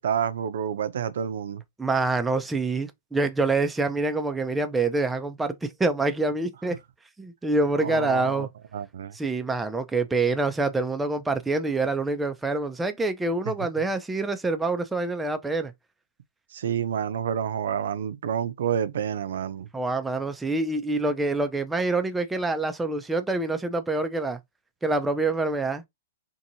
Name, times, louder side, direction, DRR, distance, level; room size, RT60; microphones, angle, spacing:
voice 1, 0.0-1.6 7.8-9.2 13.5-13.6 16.5-19.7, right 8 dB, 70° right, 0.5 m, -29 dB
voice 2, 1.8-6.7 7.2-8.5 9.1-15.7 19.7-24.4 24.8-25.8, right 3 dB, 5° right, 0.3 m, -26 dB
2.7 x 2.6 x 2.6 m
hypercardioid pair, 155°, 0 cm